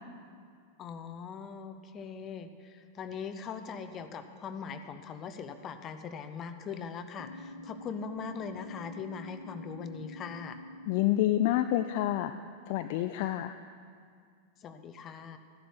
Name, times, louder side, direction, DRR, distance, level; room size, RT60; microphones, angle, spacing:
voice 1, 0.8-10.6 14.6-15.4, left 6 dB, 30° left, 9 dB, 0.7 m, -41 dB
sound 1, 7.2-12.2, left 1 dB, 70° left, 0.7 m, -47 dB
voice 2, 10.9-12.3 12.7-13.5, left 14 dB, 50° left, 9 dB, 0.3 m, -28 dB
14.0 x 11.0 x 4.5 m, 2.2 s
figure-of-eight pair, 90°, 0 cm